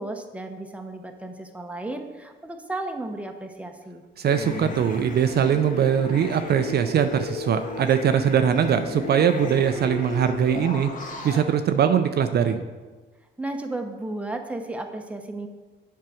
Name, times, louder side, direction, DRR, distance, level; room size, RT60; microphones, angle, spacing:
voice 1, 0.0-4.0 13.4-15.5, right 2 dB, 5° right, 5 dB, 0.8 m, -34 dB
sound 1, 4.2-11.4, left 3 dB, 40° left, 1.3 m, -35 dB
voice 2, 4.2-10.9 11.2-12.6, right 8 dB, 55° right, 8 dB, 0.5 m, -21 dB
7.5 x 4.6 x 6.2 m, 1.3 s
cardioid pair, 90°, 20 cm